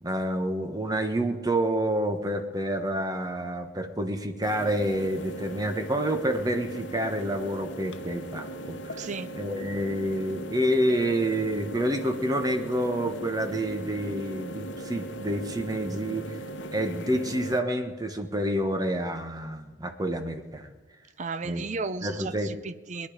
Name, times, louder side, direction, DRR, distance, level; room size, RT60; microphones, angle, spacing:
voice 1, 0.0-9.1 9.3-16.2 16.7-20.7 21.4-21.6 22.0-22.5, right 1 dB, 20° right, 5 dB, 1.2 m, -28 dB
sound 1, 4.4-17.6, right 1 dB, 85° left, 0.8 m, -39 dB
voice 2, 9.0-9.3 21.2-23.1, right 4 dB, 40° right, 13 dB, 0.6 m, -34 dB
21.0 x 10.5 x 5.1 m, 1.3 s
head